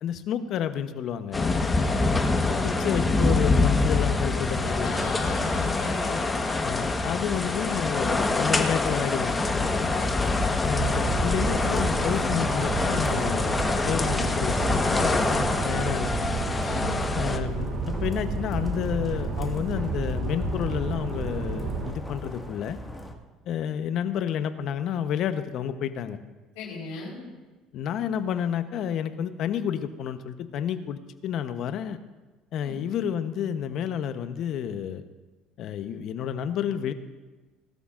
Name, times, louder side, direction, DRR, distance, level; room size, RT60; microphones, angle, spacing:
voice 1, 0.0-1.7 2.4-5.3 6.6-9.9 10.6-16.3 17.1-22.8 23.4-26.2 27.7-32.0 32.5-35.0 35.6-36.9, left 9 dB, 60° left, 10 dB, 0.9 m, -30 dB
sound 1, 1.3-17.4, left 3 dB, 20° left, 1.3 m, -25 dB
voice 2, 2.4-2.9 4.8-6.3 16.6-16.9 26.5-27.2 32.6-32.8, left 4 dB, 80° left, -8 dB, 4.5 m, -38 dB
sound 2, 8.3-23.1, left 2 dB, 5° left, 1.9 m, -36 dB
sound 3, 10.8-21.9, right 4 dB, 60° right, 1.6 m, -31 dB
19.5 x 12.5 x 2.6 m, 1.2 s
supercardioid pair, 80°, 0 cm